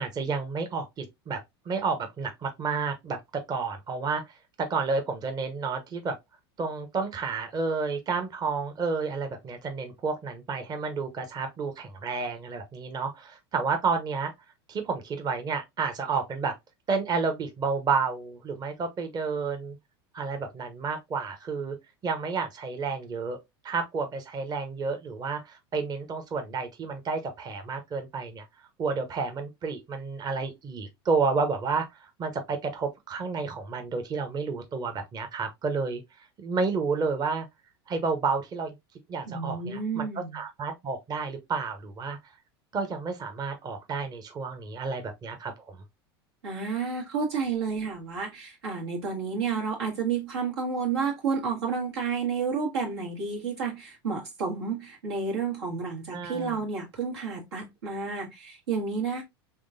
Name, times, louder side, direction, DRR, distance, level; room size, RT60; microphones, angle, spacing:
voice 1, 0.0-1.4 1.7-3.2 3.5-6.2 6.6-14.3 14.7-16.5 16.9-19.8 20.1-21.8 22.0-23.4 23.6-28.4 28.8-36.0 36.4-37.5 37.9-38.7 39.1-40.1 40.3-42.2 42.7-45.7 56.1-56.6, right 4 dB, 30° right, 0.8 m, -30 dB
voice 2, 39.3-40.4 46.4-59.2, right 5 dB, 90° right, 1.9 m, -31 dB
3.6 x 3.2 x 2.5 m
hypercardioid pair, 95°, 14 cm